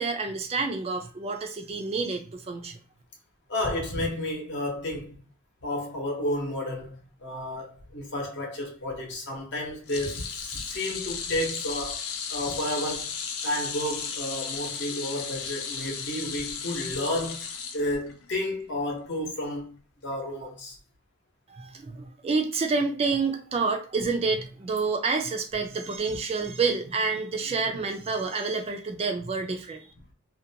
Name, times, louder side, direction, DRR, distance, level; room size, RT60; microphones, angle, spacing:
voice 1, 0.0-2.8 21.5-29.9, right 4 dB, 30° right, 0.3 m, -28 dB
voice 2, 3.5-5.2 5.6-12.0 12.3-13.1 13.4-19.8 20.0-20.8 26.1-26.2, left 1 dB, 60° left, 0.9 m, -31 dB
sound 1, 9.9-18.3 18.7-18.9 20.1-20.2, left 6 dB, 85° left, 0.5 m, -35 dB
2.5 x 2.2 x 2.7 m
head